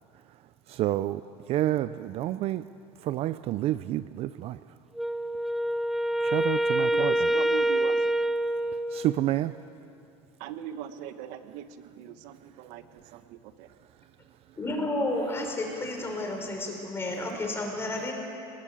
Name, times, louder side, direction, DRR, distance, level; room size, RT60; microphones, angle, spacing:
voice 1, 0.7-1.2 1.5-2.6 3.0-4.6 6.2-7.1 8.9-9.5, right 14 dB, 45° right, 0.5 m, -29 dB
Wind instrument woodwind instrument, 5.0-9.3, right 1 dB, ahead, 0.6 m, -26 dB
voice 2, 6.8-8.1 10.4-13.7, right 10 dB, 70° right, 1.3 m, -40 dB
voice 3, 14.6-18.1, left 2 dB, 20° left, 5.6 m, -31 dB
28.0 x 19.5 x 8.5 m
cardioid pair, 140°, 13 cm